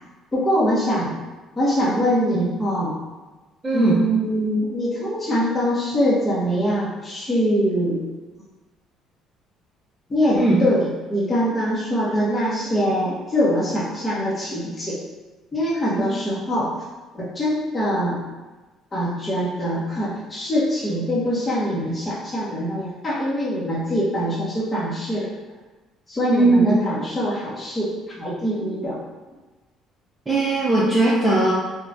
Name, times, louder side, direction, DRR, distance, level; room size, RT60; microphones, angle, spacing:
voice 1, 0.3-1.1 1.6-2.9 3.7-8.0 10.1-15.0 15.5-16.7 17.1-18.2 18.9-25.3 26.1-27.9 28.2-29.0, equal, 20° left, -7 dB, 0.8 m, -23 dB
voice 2, 3.6-4.1 10.3-10.6 26.3-26.8 30.3-31.5, right 2 dB, 15° right, -7 dB, 0.5 m, -19 dB
3.0 x 2.2 x 2.6 m, 1.2 s
cardioid pair, 95°, 0 cm